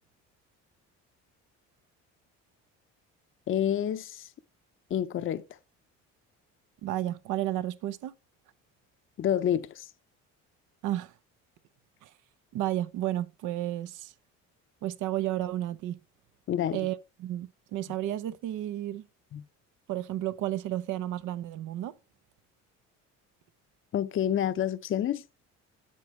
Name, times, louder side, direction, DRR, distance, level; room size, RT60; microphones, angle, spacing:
voice 1, 3.5-4.3 4.9-5.4 9.2-9.9 16.5-16.9 19.3-19.4 23.9-25.2, left 10 dB, 40° left, 0.7 m, -28 dB
voice 2, 6.8-8.1 10.8-11.1 12.0-12.1 12.5-14.1 14.8-16.0 16.7-19.0 19.9-21.9, right 13 dB, 75° right, 0.9 m, -32 dB
9.1 x 8.3 x 3.2 m
cardioid pair, 100°, 31 cm